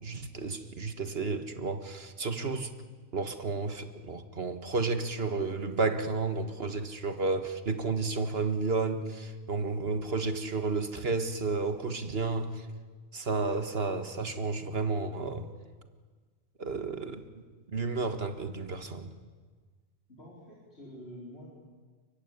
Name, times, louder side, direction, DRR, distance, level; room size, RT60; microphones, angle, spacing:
voice 1, 0.0-2.7 3.1-12.7 13.1-15.5 16.6-17.2 17.7-19.1, right 3 dB, 65° right, 1.9 m, -32 dB
voice 2, 20.1-21.5, equal, 75° left, 4.8 m, -47 dB
30.0 x 15.0 x 9.9 m
omnidirectional pair, 1.1 m